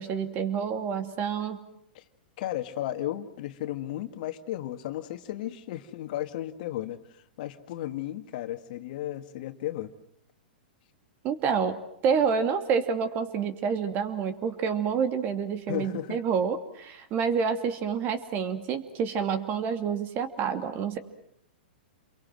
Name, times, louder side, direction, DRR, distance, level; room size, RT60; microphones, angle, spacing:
voice 1, 0.0-1.6 11.2-11.8 12.0-21.0, right 6 dB, 35° right, 10 dB, 2.7 m, -28 dB
voice 2, 2.4-9.9 15.7-16.2, left 13 dB, 55° left, 9 dB, 1.8 m, -34 dB
28.5 x 23.0 x 7.7 m, 0.73 s
hypercardioid pair, 120°, 5 cm